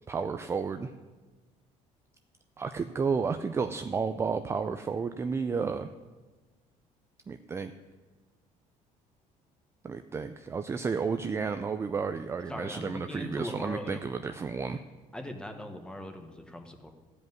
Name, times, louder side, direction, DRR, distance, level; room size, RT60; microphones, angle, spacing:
voice 1, 0.1-0.9 2.6-5.9 7.3-7.7 9.8-14.8, right 5 dB, 20° right, 9 dB, 0.4 m, -32 dB
voice 2, 12.5-14.0 15.1-16.9, left 1 dB, 5° left, 5 dB, 1.2 m, -40 dB
14.0 x 5.1 x 9.3 m, 1.3 s
cardioid pair, 140°, 14 cm